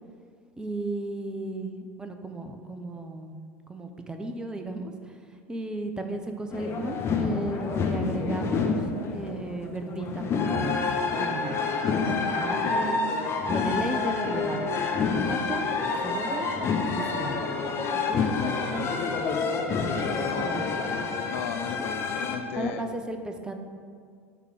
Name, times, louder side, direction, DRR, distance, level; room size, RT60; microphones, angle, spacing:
voice 1, 0.6-3.3 3.7-5.2 5.5-8.8 9.1-10.8 11.2-13.0 13.5-14.7 15.1-15.7 16.0-16.5 16.9-17.4 18.1-18.9 20.1-20.8 22.6-23.5, right 2 dB, 10° right, 5 dB, 0.7 m, -35 dB
sound 1, 6.5-22.4, left 4 dB, 35° left, 1.0 m, -28 dB
voice 2, 20.2-20.8 21.2-22.9, left 8 dB, 60° left, 9 dB, 0.6 m, -36 dB
9.8 x 3.7 x 6.3 m, 2.1 s
figure-of-eight pair, 75°, 8 cm